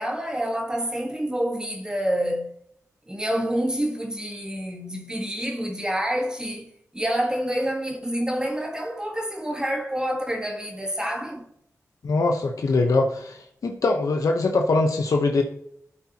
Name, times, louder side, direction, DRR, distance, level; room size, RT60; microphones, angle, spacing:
voice 1, 0.0-2.5 3.1-11.4, equal, 15° right, 1.7 m, -28 dB
voice 2, 12.0-15.4, left 3 dB, 75° left, 1.0 m, -22 dB
12.5 x 8.6 x 3.0 m
wide cardioid pair, 80°, 6 cm